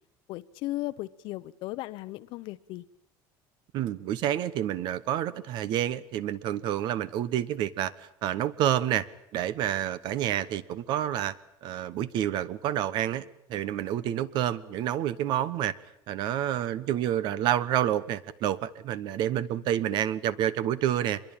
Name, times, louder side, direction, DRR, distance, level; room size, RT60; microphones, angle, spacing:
voice 1, 0.3-2.8, left 17 dB, 55° left, 15 dB, 1.0 m, -36 dB
voice 2, 3.7-9.1 9.3-11.3 11.6-13.2 13.5-15.7 16.1-21.2, right 11 dB, 50° right, 17 dB, 1.2 m, -28 dB
25.5 x 22.5 x 8.8 m, 0.70 s
cardioid pair, 170°, 10 cm